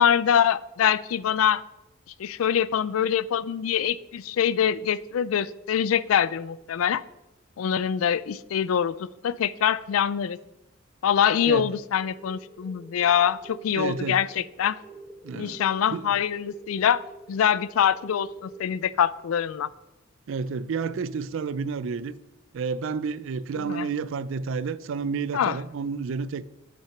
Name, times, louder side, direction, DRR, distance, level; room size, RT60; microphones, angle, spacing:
voice 1, 0.0-1.6 2.2-7.0 7.6-10.4 11.0-14.8 15.3-19.7 23.6-23.9 25.3-25.6, left 8 dB, 90° left, 0.4 m, -24 dB
sound 1, 12.0-18.8, right 2 dB, 5° right, 2.0 m, -47 dB
voice 2, 13.7-14.2 15.2-15.6 15.9-16.0 20.3-22.2 22.5-26.4, right 5 dB, 65° right, 0.4 m, -30 dB
8.6 x 5.9 x 5.8 m
head